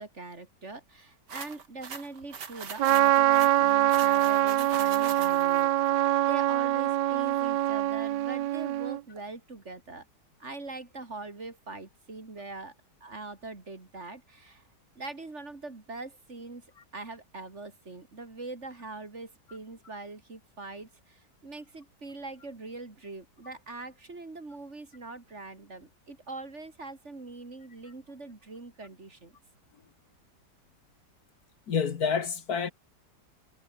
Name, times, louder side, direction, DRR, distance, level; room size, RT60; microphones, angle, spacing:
voice 1, 0.0-10.0 10.4-12.7 13.0-14.6 14.9-16.7 16.9-29.3, right 3 dB, 40° right, 3.2 m, -42 dB
sound 1, 1.3-5.6, right 6 dB, 70° right, 2.7 m, -41 dB
Trumpet, 2.8-9.0, right 15 dB, 85° right, 1.3 m, -24 dB
voice 2, 31.7-32.7, left 6 dB, 60° left, 1.8 m, -28 dB
omnidirectional pair, 1.9 m